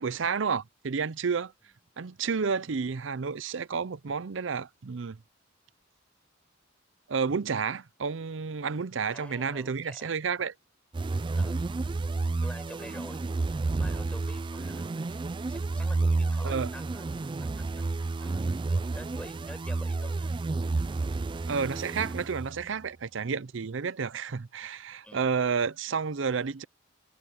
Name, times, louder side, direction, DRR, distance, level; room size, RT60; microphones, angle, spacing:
voice 1, 0.0-1.5 2.0-5.2 7.1-10.5 16.4-16.7 21.5-26.6, right 5 dB, 65° right, 0.6 m, -30 dB
voice 2, 9.1-10.1 11.4-11.6 12.4-13.2 13.7-18.4 18.9-20.3 25.0-25.3, left 1 dB, 5° left, 5.7 m, -48 dB
sound 1, 10.9-22.7, right 3 dB, 25° right, 0.3 m, -30 dB
head